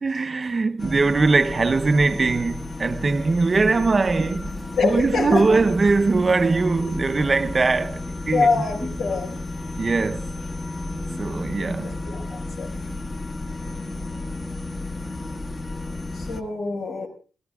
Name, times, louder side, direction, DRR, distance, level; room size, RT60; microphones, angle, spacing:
voice 1, 0.0-4.5 4.8-8.6 9.8-10.3 11.2-12.0, right 3 dB, 35° right, 0.7 m, -21 dB
sound 1, 0.8-16.4, left 2 dB, 35° left, 1.4 m, -33 dB
voice 2, 4.8-5.6 8.3-9.4 10.9-11.3 11.8-12.7 16.1-17.1, left 4 dB, 90° left, 4.8 m, -25 dB
28.5 x 14.0 x 2.3 m
cardioid pair, 105°, 0 cm